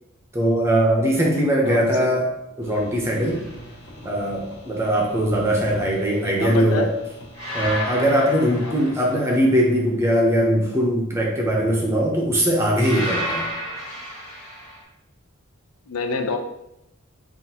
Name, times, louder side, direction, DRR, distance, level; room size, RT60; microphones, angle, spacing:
voice 1, 0.3-2.3 2.6-3.4 4.0-6.9 7.5-13.4, equal, 10° right, -1 dB, 0.6 m, -20 dB
voice 2, 1.7-2.1 6.2-6.9 8.6-8.7 15.9-16.4, left 4 dB, 85° left, 6 dB, 0.5 m, -27 dB
sound 1, 2.6-8.9, equal, 55° left, 1.5 m, -42 dB
sound 2, 3.2-3.5 7.3-9.5 12.8-14.8, equal, 15° left, 1.2 m, -31 dB
5.7 x 2.5 x 2.8 m, 0.85 s
head